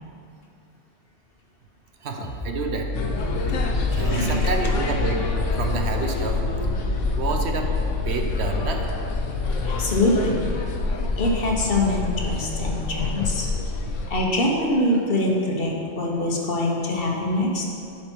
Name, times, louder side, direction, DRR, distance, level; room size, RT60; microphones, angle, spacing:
voice 1, 2.0-2.9 3.9-5.3 5.6-6.4 7.2-7.7 8.0-8.9, right 4 dB, 65° right, 4 dB, 0.9 m, -28 dB
sound 1, 2.2-13.5, left 4 dB, 70° left, 1.8 m, -34 dB
sound 2, 2.9-14.1, left 3 dB, 90° left, 1.2 m, -26 dB
voice 2, 3.9-4.5 9.6-10.4 11.2-13.5 14.1-17.7, left 1 dB, 50° left, -1 dB, 1.2 m, -24 dB
10.5 x 5.1 x 4.5 m, 2.5 s
omnidirectional pair, 1.2 m